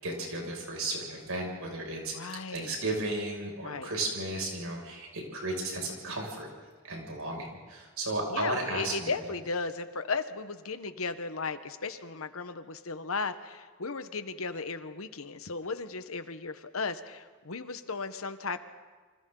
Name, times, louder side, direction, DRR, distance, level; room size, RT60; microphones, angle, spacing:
voice 1, 0.0-6.5 6.8-9.1, right 2 dB, 80° right, 0 dB, 6.4 m, -34 dB
voice 2, 2.1-2.8 3.6-3.9 8.3-18.6, left 4 dB, 75° left, 10 dB, 1.2 m, -35 dB
29.0 x 25.5 x 3.9 m, 1.5 s
head